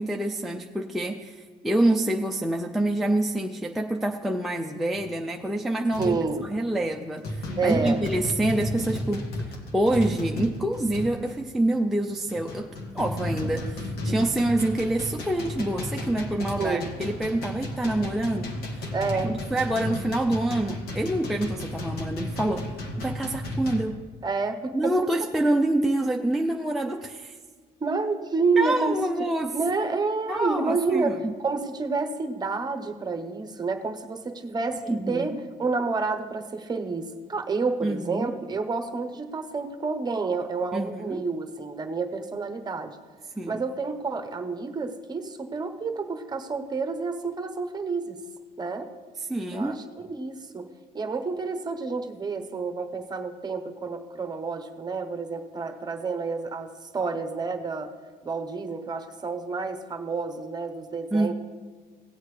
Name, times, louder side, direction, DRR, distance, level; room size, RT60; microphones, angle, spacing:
voice 1, 0.0-6.2 6.4-9.2 9.7-12.7 12.9-18.9 19.2-22.7 23.0-24.0 24.7-27.4 28.6-29.5 30.3-31.3 34.8-35.3 37.8-38.3 40.7-41.3 43.4-43.6 49.3-49.8 61.1-61.3, right 1 dB, ahead, 1 dB, 0.5 m, -26 dB
sound 1, 4.9-5.2 5.9-6.3 6.8-6.9 7.2-11.4 12.0-23.8, left 1 dB, 65° left, 1.7 m, -33 dB
voice 2, 6.0-6.5 7.6-8.0 16.6-16.9 18.9-19.3 24.2-25.0 27.8-29.0 29.5-34.8 35.1-35.3 35.6-43.0 43.5-48.2 48.6-48.9 49.5-50.7 50.9-57.9 58.2-61.3, right 4 dB, 25° right, 6 dB, 0.9 m, -29 dB
17.5 x 8.0 x 3.2 m, 1.5 s
cardioid pair, 110°, 17 cm